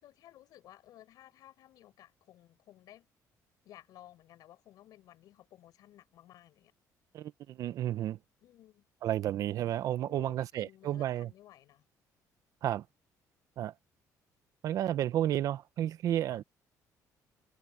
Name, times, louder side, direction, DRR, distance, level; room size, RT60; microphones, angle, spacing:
voice 1, 0.0-3.1 3.6-6.7 8.4-8.9 9.9-11.8 13.6-13.7 16.3-16.4, left 13 dB, 65° left, 5.0 m, -56 dB
voice 2, 7.1-8.2 9.0-11.3 12.6-12.8 13.6-13.7 14.6-16.4, right 12 dB, 55° right, 0.7 m, -32 dB
cardioid pair, 155°, 7 cm